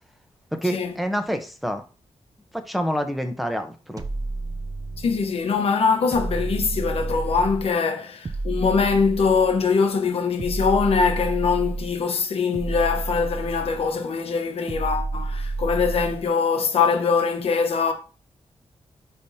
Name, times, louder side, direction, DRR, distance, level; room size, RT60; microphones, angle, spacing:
voice 1, 0.6-1.8 2.5-4.1, equal, ahead, 0.8 m, -27 dB
sound 1, 4.0-5.3 6.1-7.7 8.2-9.7 10.4-12.0 12.5-13.9 14.7-16.3, right 3 dB, 35° right, 0.6 m, -30 dB
voice 2, 5.0-17.9, left 5 dB, 70° left, 1.0 m, -22 dB
10.0 x 3.5 x 2.7 m
wide cardioid pair, 110°, 10 cm